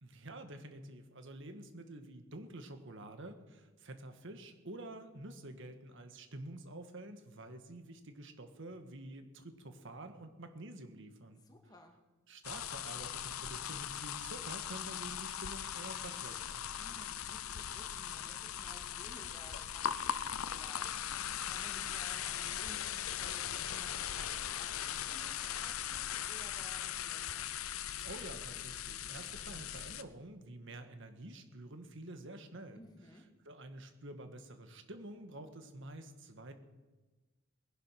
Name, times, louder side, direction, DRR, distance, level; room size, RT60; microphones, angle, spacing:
voice 1, 0.0-11.4 12.3-16.7 28.0-32.8 33.4-36.5, right 1 dB, 60° right, 7 dB, 1.7 m, -49 dB
voice 2, 11.4-11.9 16.8-27.5 32.8-33.2, left 1 dB, 20° left, 2 dB, 2.4 m, -57 dB
sound 1, 12.4-30.0, left 9 dB, 80° left, 0.7 m, -39 dB
20.0 x 11.0 x 6.0 m, 1.2 s
head